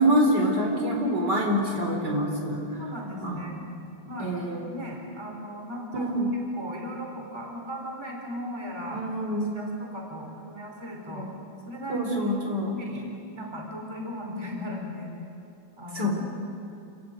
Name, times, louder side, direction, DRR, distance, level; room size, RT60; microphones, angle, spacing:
voice 1, 0.0-2.8 3.2-3.4 4.2-4.6 5.9-6.3 8.9-9.7 11.1-11.3 11.9-12.8 15.9-16.1, equal, 60° right, 0 dB, 4.3 m, -26 dB
voice 2, 2.8-3.6 4.0-4.4 4.7-6.1 6.5-9.0 9.5-11.3 11.7-12.3 12.7-15.1 15.8-16.1, equal, 15° right, 0 dB, 4.0 m, -37 dB
28.5 x 15.0 x 9.0 m, 2.6 s
omnidirectional pair, 2.1 m